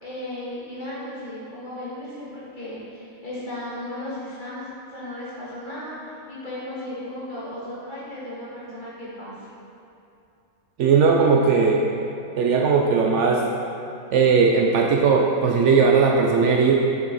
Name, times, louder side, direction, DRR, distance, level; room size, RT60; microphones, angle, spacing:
voice 1, 0.0-9.3, left 1 dB, 35° left, -9 dB, 1.9 m, -35 dB
voice 2, 10.8-11.8 12.4-13.4 14.1-16.8, right 5 dB, 70° right, 0 dB, 0.8 m, -18 dB
6.5 x 5.9 x 4.1 m, 2.7 s
omnidirectional pair, 1.4 m